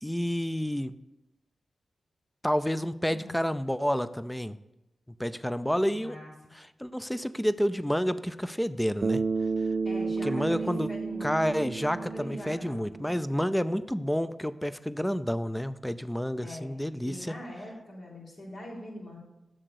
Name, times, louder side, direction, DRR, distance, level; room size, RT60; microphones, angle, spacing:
voice 1, 0.0-0.9 2.4-4.6 5.2-6.2 6.8-9.2 10.2-10.9 11.2-17.3, equal, 5° left, 13 dB, 0.5 m, -29 dB
voice 2, 5.9-6.3 9.8-11.3 11.8-12.8 16.4-16.7 17.0-19.2, left 1 dB, 65° left, -4 dB, 3.5 m, -43 dB
Bass guitar, 9.0-13.4, right 4 dB, 60° right, 0.3 m, -32 dB
7.6 x 6.7 x 6.4 m, 0.94 s
cardioid pair, 50°, 0 cm